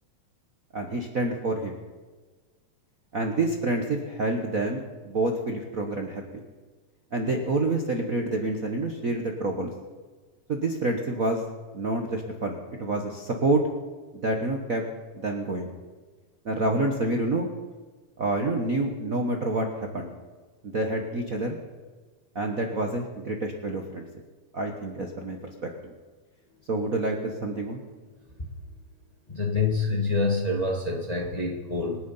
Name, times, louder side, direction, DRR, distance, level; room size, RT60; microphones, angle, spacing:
voice 1, 0.7-1.8 3.1-6.2 7.1-9.7 10.5-11.4 11.7-13.6 14.1-14.8 15.1-15.7 16.4-17.5 18.2-20.1 20.6-21.6 22.3-24.0 24.5-25.5 25.8-25.9 26.7-27.8, right 2 dB, 85° right, 2 dB, 0.7 m, -28 dB
voice 2, 29.3-32.0, left 3 dB, 20° left, 0 dB, 1.0 m, -26 dB
26.5 x 9.6 x 5.5 m, 1.4 s
omnidirectional pair, 3.7 m